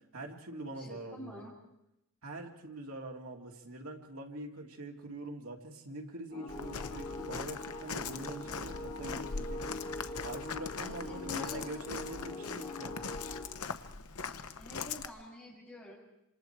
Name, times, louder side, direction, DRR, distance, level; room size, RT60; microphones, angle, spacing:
voice 1, 0.1-1.5 2.2-13.0, right 1 dB, 75° right, 1 dB, 2.7 m, -44 dB
voice 2, 0.8-1.5 10.8-11.6 14.6-15.9, left 1 dB, 5° left, -6 dB, 7.4 m, -48 dB
sound 1, 6.3-13.5, left 2 dB, 35° left, 4.8 m, -43 dB
Walk footsteps, 6.5-15.1, left 5 dB, 85° left, 1.0 m, -41 dB
27.0 x 26.5 x 4.7 m, 0.87 s
head